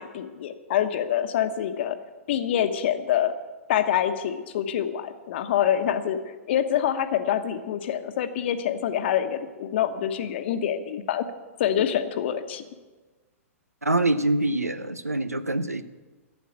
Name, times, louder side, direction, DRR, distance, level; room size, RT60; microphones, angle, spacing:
voice 1, 0.0-2.0 2.3-3.3 3.7-6.2 6.5-11.3 11.6-12.6, left 10 dB, 50° left, 9 dB, 1.1 m, -26 dB
voice 2, 13.8-15.8, right 2 dB, 90° right, 13 dB, 0.8 m, -25 dB
12.5 x 8.5 x 8.7 m, 1.3 s
figure-of-eight pair, 110°, 8 cm